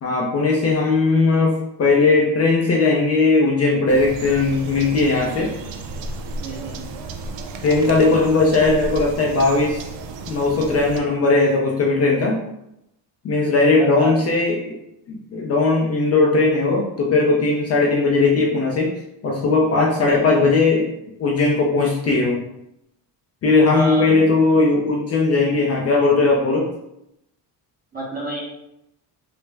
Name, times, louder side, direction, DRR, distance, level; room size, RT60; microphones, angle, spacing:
voice 1, 0.0-5.5 7.6-9.8 10.3-12.4 13.2-14.7 15.1-18.9 19.2-20.9 21.2-22.4 23.4-26.7, left 3 dB, 35° left, -2 dB, 0.4 m, -18 dB
sound 1, 3.9-11.0, right 3 dB, 85° right, 0.5 m, -33 dB
voice 2, 6.4-6.8 13.8-14.1 23.7-24.0 27.9-28.4, equal, 20° right, -2 dB, 0.7 m, -28 dB
3.3 x 2.0 x 3.2 m, 0.82 s
cardioid pair, 145°, 43 cm